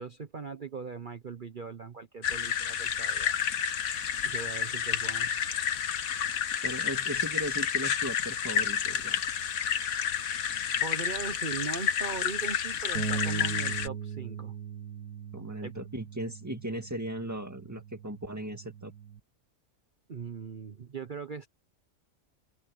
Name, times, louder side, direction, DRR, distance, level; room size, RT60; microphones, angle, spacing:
voice 1, 0.0-3.4 4.2-5.3 10.8-14.5 15.6-15.7 20.1-21.5, right 5 dB, 40° right, 1.0 m, -40 dB
sound 1, 2.2-13.9, left 8 dB, 75° left, 1.4 m, -30 dB
voice 2, 6.6-9.2 15.3-18.9, right 1 dB, 10° right, 1.9 m, -37 dB
Bass guitar, 12.9-19.2, right 6 dB, 80° right, 2.6 m, -39 dB
open air
omnidirectional pair, 1.5 m